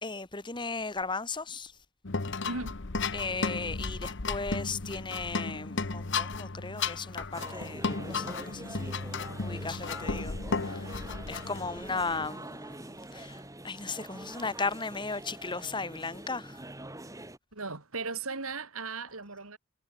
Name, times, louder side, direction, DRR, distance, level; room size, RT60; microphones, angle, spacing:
voice 1, 0.0-1.8 3.1-9.1 9.4-16.6, left 4 dB, 20° left, 1.7 m, -36 dB
sound 1, 2.0-12.3, left 4 dB, 55° left, 1.1 m, -34 dB
voice 2, 2.4-2.8 17.5-19.6, right 4 dB, 75° right, 3.9 m, -37 dB
sound 2, 7.3-17.4, right 1 dB, 15° right, 2.3 m, -44 dB
head